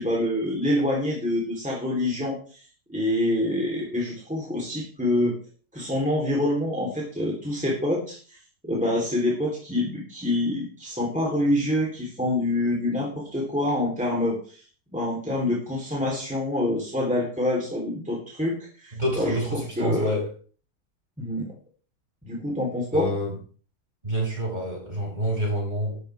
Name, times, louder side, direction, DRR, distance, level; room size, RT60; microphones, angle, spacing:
voice 1, 0.0-2.6 2.9-5.4 5.7-8.4 8.6-14.6 14.9-20.1 21.2-21.5 22.2-23.1, left 1 dB, 5° right, 3.5 m, -26 dB
voice 2, 19.0-20.3 22.9-23.4 24.0-26.0, equal, 25° right, 6.1 m, -27 dB
13.0 x 12.5 x 3.5 m
omnidirectional pair, 1.7 m